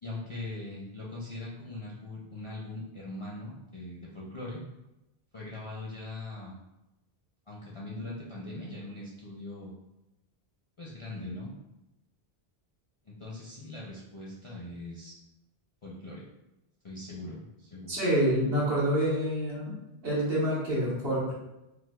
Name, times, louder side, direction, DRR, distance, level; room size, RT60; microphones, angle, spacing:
voice 1, 0.0-4.6 5.3-6.6 7.5-9.7 10.8-11.5 13.1-15.2 15.8-16.2 16.8-18.0, left 2 dB, 45° left, -5 dB, 0.4 m, -41 dB
voice 2, 17.9-19.7 20.0-21.3, equal, 70° right, -7 dB, 1.3 m, -27 dB
4.9 x 2.0 x 2.2 m, 0.94 s
omnidirectional pair, 1.1 m